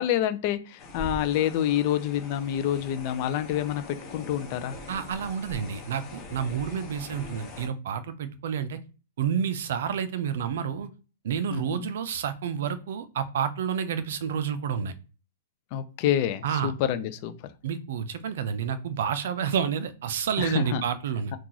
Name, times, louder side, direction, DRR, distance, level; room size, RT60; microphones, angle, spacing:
voice 1, 0.0-4.8 11.5-11.9 15.7-17.3 20.4-20.8, left 11 dB, 30° left, 10 dB, 0.4 m, -27 dB
sound 1, 0.8-7.7, left 2 dB, 15° left, 0.8 m, -42 dB
voice 2, 4.9-8.8 9.2-10.9 11.2-14.9 16.4-16.7 17.6-21.3, right 7 dB, 55° right, 12 dB, 0.4 m, -29 dB
2.9 x 2.3 x 3.8 m, 0.35 s
hypercardioid pair, 175°, 0 cm